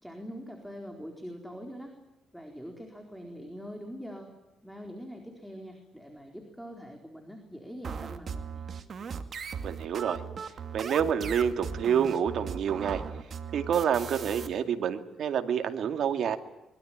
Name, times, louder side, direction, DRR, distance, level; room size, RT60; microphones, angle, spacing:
voice 1, 0.0-1.9 2.3-4.4 4.6-8.7, equal, ahead, 3 dB, 4.2 m, -43 dB
sound 1, 7.8-14.5, right 6 dB, 50° right, 2.4 m, -38 dB
voice 2, 9.6-10.2 10.7-13.0 13.5-16.4, right 8 dB, 65° right, 7 dB, 2.4 m, -28 dB
24.0 x 22.5 x 9.0 m, 0.92 s
cardioid pair, 110°, 0 cm